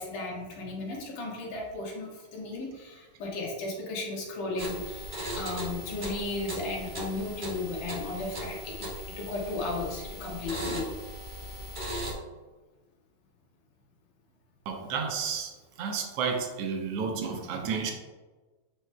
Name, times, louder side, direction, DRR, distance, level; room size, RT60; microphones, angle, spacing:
voice 1, 0.0-8.9 9.2-10.9, left 2 dB, 90° left, -3 dB, 2.9 m, -35 dB
sound 1, 4.6-12.1, equal, 55° right, 0.5 m, -37 dB
voice 2, 14.7-15.5 15.8-17.9, right 6 dB, 75° right, 3 dB, 1.4 m, -31 dB
8.7 x 4.8 x 2.2 m, 1.3 s
omnidirectional pair, 3.5 m